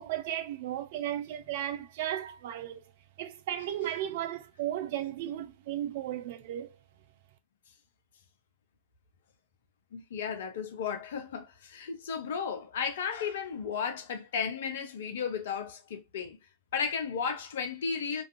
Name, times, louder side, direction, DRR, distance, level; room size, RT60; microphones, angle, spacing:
voice 1, 0.0-2.8 3.2-6.8, right 12 dB, 50° right, 0.4 m, -35 dB
voice 2, 9.9-16.4 16.7-18.2, left 6 dB, 60° left, 0.6 m, -34 dB
2.5 x 2.4 x 2.4 m
figure-of-eight pair, 90°, 0 cm